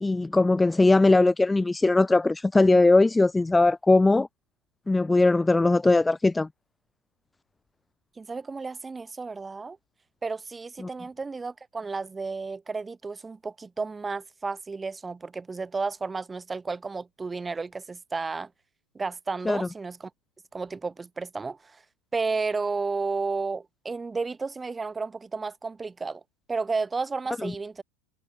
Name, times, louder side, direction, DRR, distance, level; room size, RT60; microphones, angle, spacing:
voice 1, 0.0-4.3 4.9-6.5 10.8-10.9 19.5-19.7 27.4-27.5, left 2 dB, 10° left, 0.7 m, -20 dB
voice 2, 8.2-9.8 10.2-18.5 18.9-20.1 20.5-21.8 22.1-26.2 26.5-27.8, right 4 dB, 15° right, 6.6 m, -32 dB
figure-of-eight pair, 85°, 0 cm